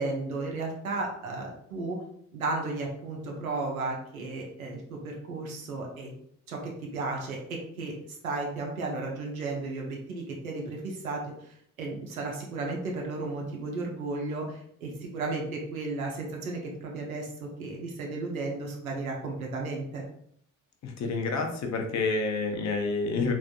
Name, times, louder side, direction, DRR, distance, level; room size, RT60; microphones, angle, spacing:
voice 1, 0.0-2.0 2.3-6.1 6.5-7.9 8.2-20.0, right 3 dB, 85° right, -1 dB, 0.6 m, -34 dB
voice 2, 20.8-23.3, left 3 dB, 40° left, 4 dB, 0.7 m, -28 dB
3.3 x 2.5 x 2.4 m, 0.69 s
figure-of-eight pair, 40°, 41 cm